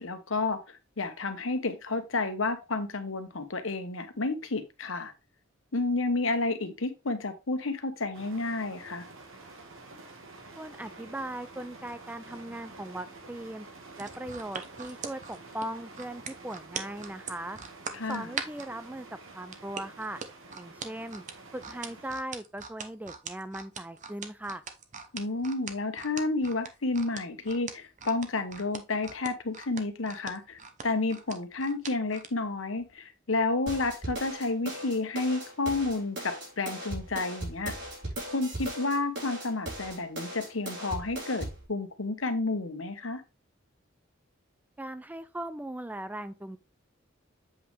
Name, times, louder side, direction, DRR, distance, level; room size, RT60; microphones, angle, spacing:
voice 1, 0.0-5.1 5.7-9.0 17.9-18.3 25.1-37.7 38.3-43.2, left 3 dB, 80° left, 1.2 m, -31 dB
sound 1, 8.1-22.2, right 2 dB, 90° right, 1.7 m, -49 dB
voice 2, 10.6-13.7 14.0-17.6 18.1-19.1 19.3-20.2 20.6-21.2 21.5-24.6 44.8-46.6, right 1 dB, 10° right, 0.4 m, -39 dB
sound 2, 13.9-18.7 19.5-32.3 32.8-32.9, right 6 dB, 40° right, 0.9 m, -40 dB
sound 3, 33.7-41.6, right 1 dB, 60° right, 4.1 m, -38 dB
7.9 x 5.3 x 3.3 m
head